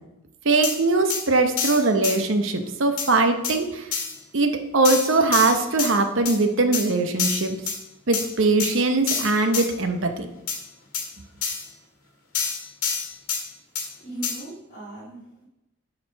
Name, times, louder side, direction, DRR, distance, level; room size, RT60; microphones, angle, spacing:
voice 1, 0.4-3.9 4.3-7.6 8.1-10.3, right 3 dB, 60° right, 6 dB, 0.8 m, -21 dB
sound 1, 0.6-0.8 1.1-1.2 1.6-2.2 3.0-3.1 3.4-3.6 3.9-4.1 4.8-5.9 6.3-6.4 6.7-6.9 7.2-7.8 8.1-8.3 8.6-8.7 9.1-9.7 10.5-10.6 10.9-11.1 11.4-11.6 12.3-13.4 13.8-13.9 14.2-14.4, left 6 dB, 75° left, 1.9 m, -26 dB
voice 2, 14.0-15.4, right 1 dB, 35° left, -7 dB, 1.8 m, -38 dB
7.2 x 4.2 x 6.2 m, 0.95 s
head